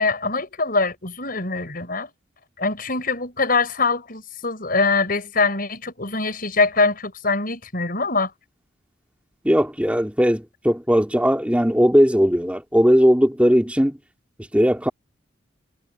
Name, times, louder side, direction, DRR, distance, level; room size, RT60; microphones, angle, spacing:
voice 1, 0.0-2.1 2.6-8.3, left 3 dB, 45° left, 6.3 m, -23 dB
voice 2, 9.4-13.9 14.5-14.9, equal, 5° right, 3.5 m, -18 dB
head